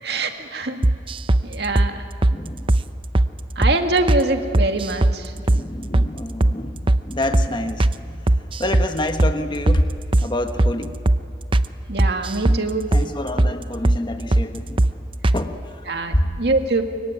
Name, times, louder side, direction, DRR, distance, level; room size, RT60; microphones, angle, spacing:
voice 1, 0.0-0.8 1.4-2.0 3.6-5.3 11.9-12.9 15.9-16.8, right 2 dB, 65° right, 5 dB, 2.2 m, -23 dB
sound 1, 0.8-1.4 1.8-1.9 2.2-2.4 2.7-2.8 3.1-3.3 3.6-3.8 4.1-4.2 4.5-5.2 5.5-5.6 5.9-6.1 6.4-6.6 6.9-7.0 7.3-7.5 7.8-8.0 8.3-8.9 9.2-9.4 9.7-9.8 10.1-10.3 10.6-10.8 11.1-11.2 11.5-11.7 12.0-12.6 12.9-13.1 13.4-13.5 13.8-14.0 14.3-14.5 14.8-14.9 15.2-15.4, right 1 dB, 30° right, 0.7 m, -17 dB
voice 2, 2.3-2.7 5.3-9.9 10.2-10.9 12.4-14.8 15.3-15.8 16.1-16.3, left 1 dB, 25° left, 6 dB, 1.3 m, -27 dB
24.5 x 23.0 x 9.9 m, 2.3 s
head